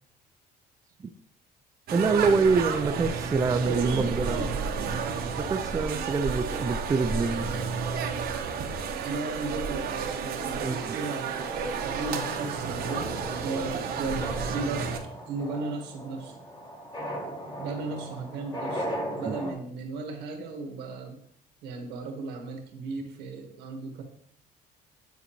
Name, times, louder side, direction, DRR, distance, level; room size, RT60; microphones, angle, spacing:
voice 1, 1.9-4.4 5.4-7.5 10.6-11.0 19.3-19.4, right 4 dB, 20° right, 9 dB, 0.4 m, -25 dB
sound 1, 1.9-15.0, right 5 dB, 65° right, 0.9 m, -32 dB
voice 2, 3.6-4.6 9.0-11.3 11.8-14.9 15.3-16.4 17.6-18.9 19.2-21.2 21.6-24.0, right 3 dB, 85° right, 4 dB, 1.4 m, -35 dB
sound 2, 11.3-19.5, equal, 25° left, 1.4 m, -38 dB
9.3 x 4.1 x 2.9 m, 0.64 s
cardioid pair, 110°, 17 cm